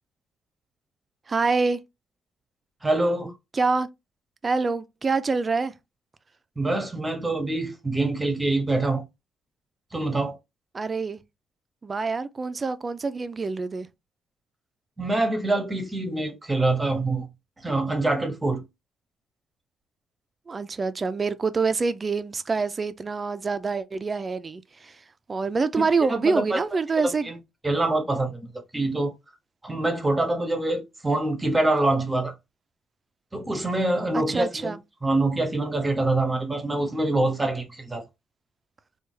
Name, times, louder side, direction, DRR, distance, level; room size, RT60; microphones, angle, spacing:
voice 1, 1.3-1.8 3.5-3.9 4.4-5.7 10.7-11.2 11.8-13.9 20.5-27.3 34.1-34.8, right 4 dB, 30° right, 0.4 m, -26 dB
voice 2, 2.8-3.3 6.6-9.0 9.9-10.4 15.0-17.3 17.6-18.6 26.1-26.6 27.0-27.4 27.6-29.1 29.6-32.3 33.3-34.7 35.0-38.0, right 2 dB, 15° right, 0.8 m, -25 dB
3.3 x 2.3 x 3.2 m
cardioid pair, 90°, 0 cm